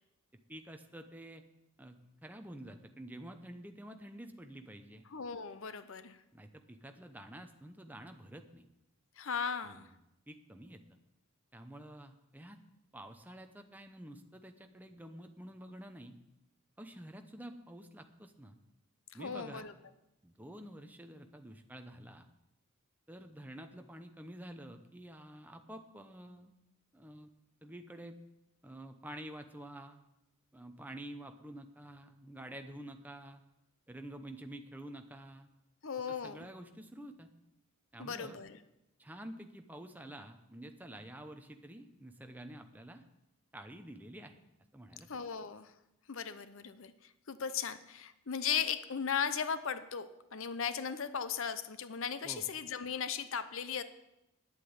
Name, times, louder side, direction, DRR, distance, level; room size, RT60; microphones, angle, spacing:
voice 1, 0.5-1.4 1.8-5.1 6.3-8.6 9.6-9.9 10.3-10.8 11.5-12.6 12.9-16.2 16.8-18.6 19.1-19.7 20.2-22.3 23.1-26.5 26.9-27.3 27.6-28.2 28.6-30.0 30.5-33.4 33.9-35.5 36.1-37.3 37.9-38.4 39.0-43.0 43.5-44.4 44.7-45.1 52.2-52.5, right 1 dB, 10° right, 6 dB, 0.8 m, -49 dB
voice 2, 5.1-6.2 9.2-9.9 19.2-19.7 35.8-36.5 38.0-38.6 45.1-45.7 46.1-53.8, left 7 dB, 65° left, 12 dB, 0.7 m, -37 dB
9.7 x 8.3 x 8.8 m, 0.91 s
head